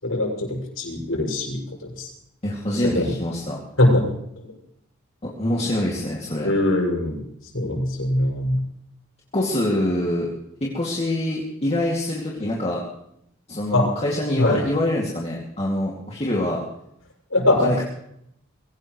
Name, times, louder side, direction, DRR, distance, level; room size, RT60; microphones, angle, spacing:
voice 1, 0.0-2.1 2.9-3.1 3.8-4.0 6.4-7.2 7.5-8.6 13.7-13.9 14.4-14.6 17.3-17.8, left 1 dB, 80° left, -1 dB, 6.9 m, -21 dB
voice 2, 2.4-3.6 5.2-6.5 9.3-10.3 10.6-12.8 13.5-16.6 17.6-17.8, left 1 dB, 30° left, -4 dB, 2.5 m, -25 dB
23.0 x 17.5 x 3.2 m, 0.75 s
head